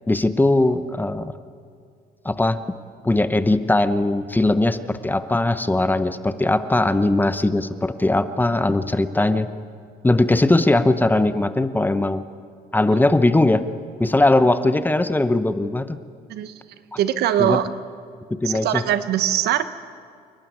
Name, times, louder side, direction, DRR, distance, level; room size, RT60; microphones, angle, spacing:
voice 1, 0.1-1.4 2.2-2.6 3.0-9.5 10.0-12.2 12.7-13.6 14.0-16.0 17.4-17.6 18.3-18.8, left 2 dB, 10° left, 11 dB, 0.9 m, -19 dB
voice 2, 16.3-16.6 17.0-17.7 18.4-19.7, right 11 dB, 75° right, 12 dB, 1.1 m, -21 dB
28.5 x 12.0 x 9.5 m, 2.2 s
cardioid pair, 110°, 17 cm